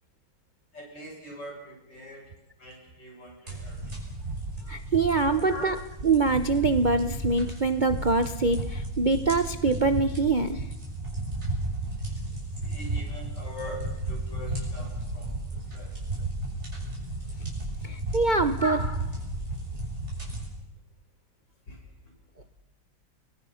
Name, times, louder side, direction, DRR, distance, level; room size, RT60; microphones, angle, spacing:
voice 1, 0.7-2.3 2.6-4.0 5.2-5.7 12.6-15.4 15.7-15.9 18.6-18.8 21.7-21.8, equal, 55° left, 0 dB, 7.6 m, -41 dB
sound 1, 3.5-20.5, right 2 dB, 30° right, 7.6 m, -34 dB
voice 2, 4.7-5.8 6.0-10.6 17.8-18.8, right 3 dB, 80° right, 9 dB, 0.4 m, -24 dB
29.5 x 22.5 x 5.7 m, 0.95 s
omnidirectional pair, 2.3 m